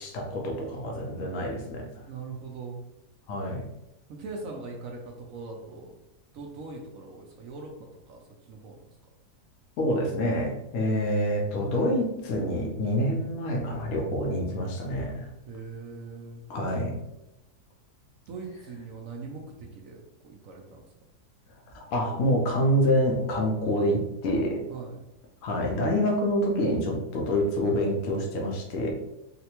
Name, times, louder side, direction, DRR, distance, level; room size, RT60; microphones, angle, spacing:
voice 1, 0.0-1.9 3.3-3.6 9.8-15.3 16.5-17.0 21.7-24.6 25.4-28.9, equal, 65° left, 1 dB, 1.0 m, -27 dB
voice 2, 2.1-2.8 4.1-5.9 6.3-7.7 8.1-8.8 15.5-16.4 18.3-20.8 24.7-25.1, right 4 dB, 70° right, 0 dB, 0.8 m, -41 dB
4.0 x 2.1 x 2.9 m, 0.89 s
omnidirectional pair, 1.8 m